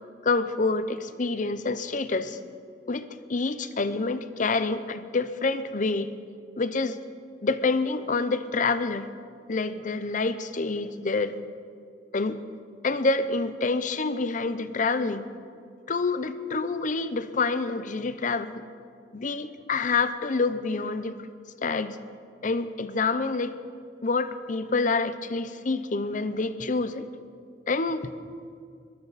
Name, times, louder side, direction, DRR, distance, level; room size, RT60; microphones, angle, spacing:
voice 1, 0.2-2.4 2.9-6.1 6.6-7.0 7.4-9.1 9.5-11.3 12.1-12.4 12.8-15.3 15.9-18.6 19.1-21.2 21.6-22.0 22.4-23.5 24.0-27.1 27.7-28.2, left 3 dB, 45° left, 13 dB, 0.7 m, -27 dB
20.5 x 15.0 x 4.1 m, 2.3 s
head